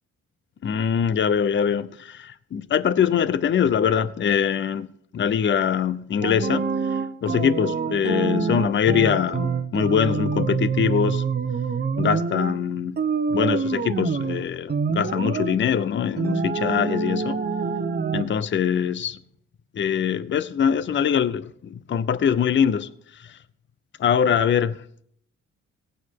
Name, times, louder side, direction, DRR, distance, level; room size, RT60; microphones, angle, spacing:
voice 1, 0.6-4.9 5.1-11.2 12.0-13.0 13.3-17.4 18.1-19.2 19.7-23.4 24.0-24.8, left 8 dB, 40° left, 0.7 m, -23 dB
sound 1, 6.2-12.6 13.0-14.4 14.7-15.6 16.2-18.2, right 5 dB, 35° right, 1.0 m, -26 dB
17.0 x 9.4 x 3.7 m
cardioid pair, 90°, 30 cm